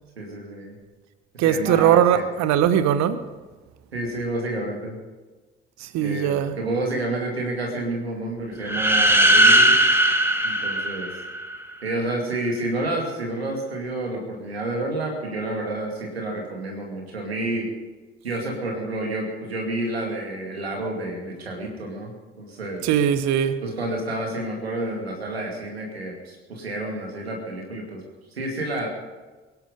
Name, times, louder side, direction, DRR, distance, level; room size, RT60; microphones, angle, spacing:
voice 1, 0.2-0.8 1.3-2.2 3.9-5.0 6.0-9.8 10.4-11.1 11.8-17.7 18.2-22.9 23.6-28.0 28.4-28.9, right 2 dB, 90° right, 2.5 m, -29 dB
voice 2, 1.4-3.2 5.8-6.6 22.8-23.6, right 9 dB, 65° right, 1.1 m, -20 dB
sound 1, 8.6-11.6, right 1 dB, 10° right, 2.1 m, -18 dB
23.0 x 11.0 x 5.2 m
figure-of-eight pair, 45°, 30 cm